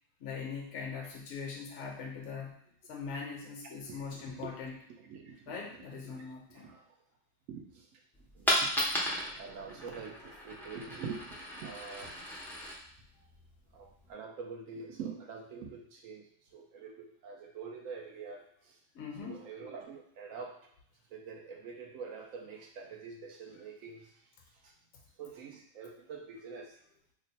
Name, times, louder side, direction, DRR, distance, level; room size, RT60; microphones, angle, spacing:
voice 1, 0.2-2.5 2.9-4.8 5.5-6.7 13.2-13.3 18.9-19.4, left 5 dB, 60° left, -1 dB, 0.9 m, -41 dB
voice 2, 3.9-4.6 5.0-5.6 6.0-6.2 6.5-6.8 7.5-8.0 8.3-9.0 9.4-12.2 13.7-18.8 19.2-20.6 21.1-24.1 24.6-24.7 25.2-26.7, right 5 dB, 80° right, 1 dB, 1.0 m, -45 dB
Coin (dropping), 8.1-14.1, equal, 5° left, 0.3 m, -36 dB
3.1 x 2.1 x 4.0 m, 0.69 s
omnidirectional pair, 1.4 m